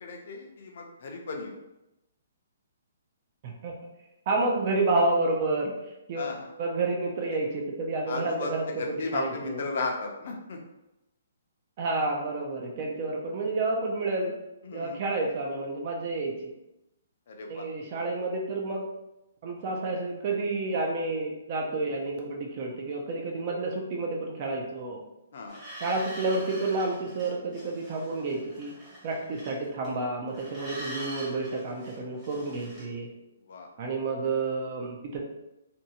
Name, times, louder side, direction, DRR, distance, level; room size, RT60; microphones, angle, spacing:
voice 1, 0.0-1.6 6.2-6.5 8.1-8.5 8.8-10.6 14.7-15.0 17.3-17.6 25.3-25.6 33.5-33.7, left 3 dB, 55° left, 1 dB, 0.5 m, -35 dB
voice 2, 3.4-3.8 4.3-5.7 6.1-9.7 11.8-14.3 14.7-16.5 17.5-18.9 19.4-25.0 25.8-28.7 29.0-33.1 33.8-35.2, right 2 dB, 35° right, 0 dB, 0.4 m, -30 dB
sound 1, 25.5-30.0 30.3-32.8, right 1 dB, 10° right, 0.9 m, -44 dB
2.6 x 2.2 x 2.8 m, 0.91 s
hypercardioid pair, 165°, 0 cm